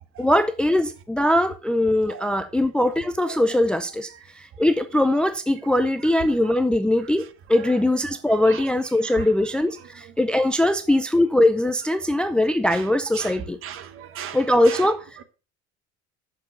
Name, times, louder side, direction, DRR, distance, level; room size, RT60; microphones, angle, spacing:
voice 1, 0.2-4.1 4.4-7.2 7.5-13.6 14.3-15.0, left 1 dB, 5° left, 0.4 m, -21 dB
voice 2, 2.1-2.5 3.2-3.6 4.1-4.2 6.3-6.6 7.0-8.7 9.0-10.1 12.0-15.2, right 8 dB, 45° right, 1.1 m, -40 dB
8.2 x 6.9 x 5.5 m
cardioid pair, 160°, 30 cm